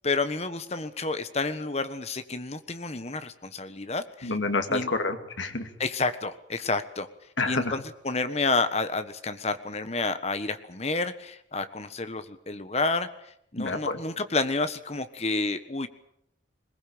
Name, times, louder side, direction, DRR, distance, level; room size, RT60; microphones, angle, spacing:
voice 1, 0.0-4.4 4.7-4.9 5.8-7.1 7.4-13.1 13.5-15.9, left 3 dB, 35° left, 11 dB, 1.4 m, -30 dB
voice 2, 4.2-5.7 7.4-7.8 13.6-14.0, left 3 dB, 80° left, 7 dB, 2.4 m, -28 dB
21.5 x 19.5 x 8.7 m, 0.75 s
head